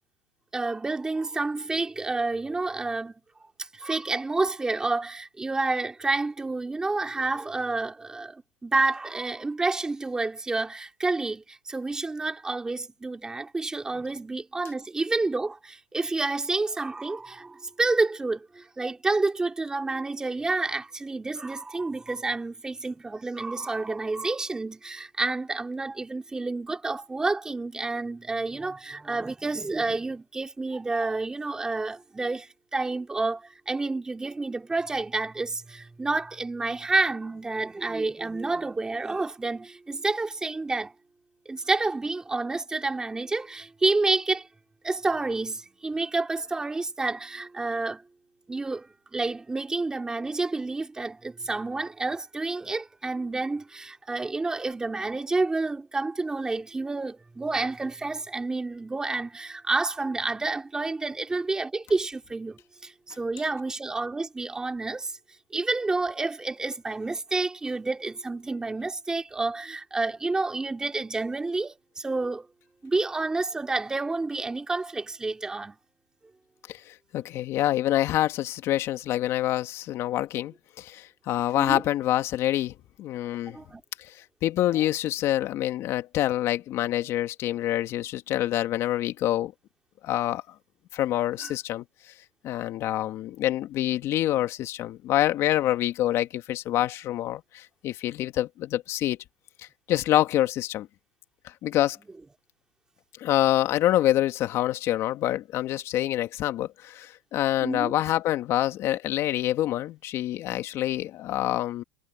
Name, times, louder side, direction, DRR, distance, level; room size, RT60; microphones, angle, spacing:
voice 1, 0.5-3.1 3.4-40.9 41.5-44.5 44.8-48.0 48.5-65.1 65.5-72.5 72.8-75.8 81.6-81.8 83.5-83.8 84.7-84.8 91.4-91.5 107.6-107.9, right 3 dB, 10° right, 2.8 m, -29 dB
voice 2, 76.7-83.6 84.4-89.5 90.0-90.4 90.9-91.8 92.4-99.2 99.9-100.9 101.6-102.0 103.2-111.8, left 13 dB, 40° left, 2.2 m, -26 dB
supercardioid pair, 135°, 7 cm